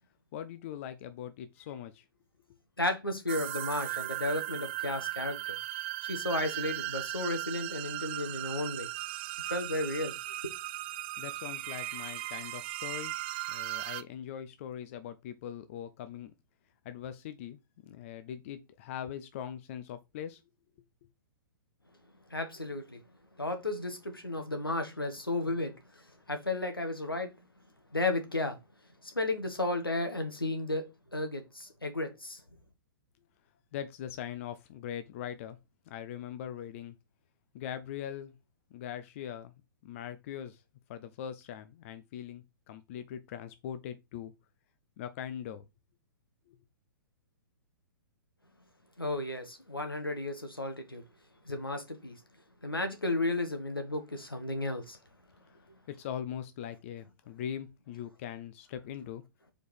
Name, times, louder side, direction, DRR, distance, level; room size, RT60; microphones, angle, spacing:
voice 1, 0.3-2.0 11.2-13.1 13.5-16.3 16.8-20.4 33.7-35.6 35.9-37.0 37.5-38.3 38.7-39.5 39.8-40.6 40.9-44.3 45.0-45.6 46.5-46.6 55.9-59.2, left 9 dB, 35° left, 0.6 m, -41 dB
voice 2, 2.8-5.6 6.1-8.9 9.5-10.1 22.3-23.0 23.4-25.7 26.3-27.3 27.9-28.6 29.1-30.8 31.1-32.4 49.0-51.0 51.5-52.2 52.6-55.0, left 2 dB, 85° left, 1.5 m, -33 dB
sound 1, 3.3-14.0, right 16 dB, 30° right, 0.3 m, -37 dB
4.9 x 4.3 x 4.7 m
figure-of-eight pair, 115°, 12 cm